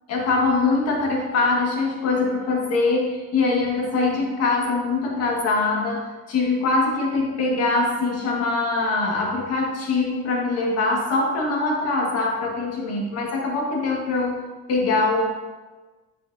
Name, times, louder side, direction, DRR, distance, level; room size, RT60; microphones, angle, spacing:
voice 1, 0.1-14.4 14.7-15.2, left 3 dB, 55° left, -2 dB, 1.7 m, -23 dB
8.5 x 5.0 x 2.7 m, 1.3 s
cardioid pair, 135°, 30 cm